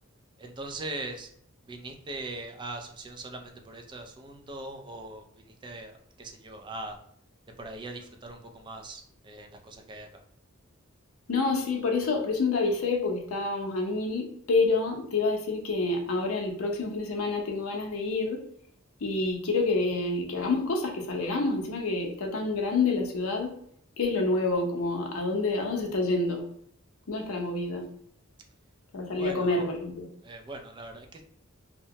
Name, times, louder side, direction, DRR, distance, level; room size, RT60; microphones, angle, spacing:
voice 1, 0.4-1.3 1.7-7.0 7.6-10.2 29.2-29.7 30.2-31.2, right 2 dB, 20° right, 4 dB, 0.3 m, -41 dB
voice 2, 11.3-18.4 19.0-23.5 24.0-26.4 27.1-27.9 28.9-30.1, left 3 dB, 85° left, 2 dB, 0.6 m, -28 dB
2.8 x 2.2 x 2.7 m, 0.66 s
head